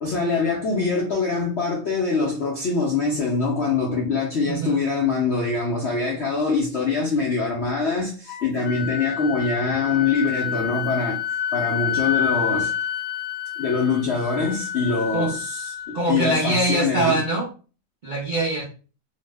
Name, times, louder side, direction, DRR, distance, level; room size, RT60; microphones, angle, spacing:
voice 1, 0.0-11.2 11.5-12.7 13.6-17.2, left 4 dB, 65° left, 0.6 m, -24 dB
voice 2, 4.5-4.8 15.1-15.3 15.9-17.5 18.0-18.6, right 2 dB, 50° right, 0.5 m, -23 dB
Wind instrument woodwind instrument, 8.3-16.0, left 9 dB, 80° left, 1.2 m, -28 dB
2.9 x 2.0 x 3.3 m
omnidirectional pair, 1.8 m